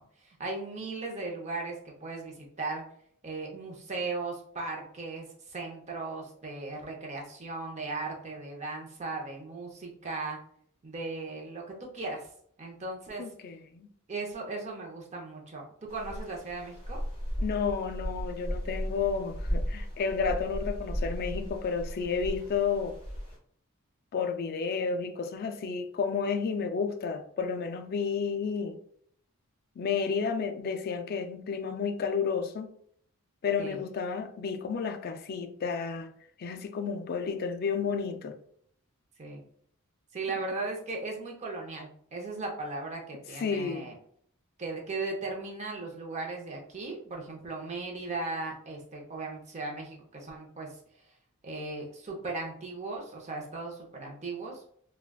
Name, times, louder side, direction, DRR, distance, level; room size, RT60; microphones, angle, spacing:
voice 1, 0.2-2.8 3.2-10.4 10.8-12.3 12.6-13.2 14.1-17.0 33.6-33.8 39.2-39.4 40.1-43.9 44.6-50.8 51.4-54.6, right 3 dB, 30° right, 0.6 m, -37 dB
voice 2, 13.2-13.9 17.4-23.0 24.1-28.8 29.8-32.7 33.4-36.1 36.4-38.4 40.4-40.5 43.4-43.9, left 5 dB, 45° left, 0.3 m, -31 dB
sound 1, 15.9-23.4, equal, 25° left, 1.3 m, -35 dB
3.6 x 2.2 x 2.2 m
head